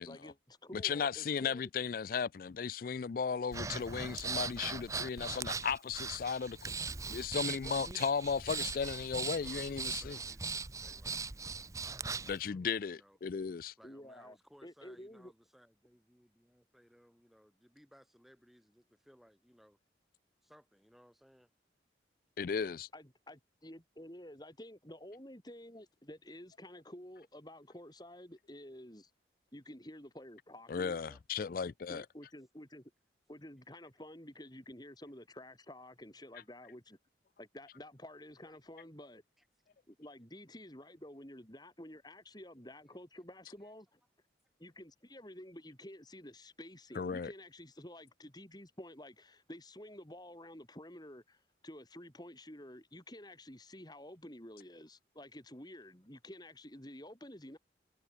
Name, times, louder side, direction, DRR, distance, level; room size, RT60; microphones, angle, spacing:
voice 1, 0.0-1.6 7.6-8.0 13.8-14.4 14.6-15.3 22.9-29.1 29.5-31.0 31.9-32.9 33.3-37.0 37.4-39.2 39.9-44.0 44.6-57.6, left 1 dB, 20° left, 4.6 m, -51 dB
voice 2, 0.7-6.7 7.1-10.2 12.3-13.7 22.4-22.9 30.7-32.1 47.0-47.3, left 6 dB, 50° left, 0.4 m, -35 dB
Breathing, 3.5-12.4, right 4 dB, 15° right, 0.6 m, -40 dB
voice 3, 9.2-13.2 13.8-19.8 20.4-21.5 30.9-31.2 35.9-36.0 38.4-38.6 39.4-39.5 42.6-42.7 43.2-43.7, equal, ahead, 5.3 m, -64 dB
head